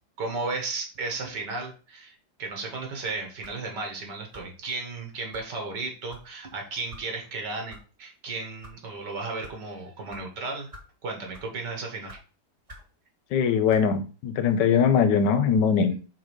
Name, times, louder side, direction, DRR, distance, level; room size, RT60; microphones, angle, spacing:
voice 1, 0.2-10.7 11.0-12.2, right 3 dB, 80° right, 2 dB, 2.1 m, -34 dB
sound 1, 3.4-3.7 4.3-4.6 5.3-5.5 6.1-6.3 6.9-7.1 7.7-7.8 8.4-8.8 9.4-9.6 10.1-10.2 10.7-10.9 11.3-11.6 12.1-12.2 12.7-12.9 13.7-13.9, equal, 25° right, 1.1 m, -47 dB
voice 2, 13.3-16.0, left 6 dB, 85° left, 10 dB, 1.4 m, -21 dB
4.9 x 4.0 x 4.8 m, 0.36 s
omnidirectional pair, 1.8 m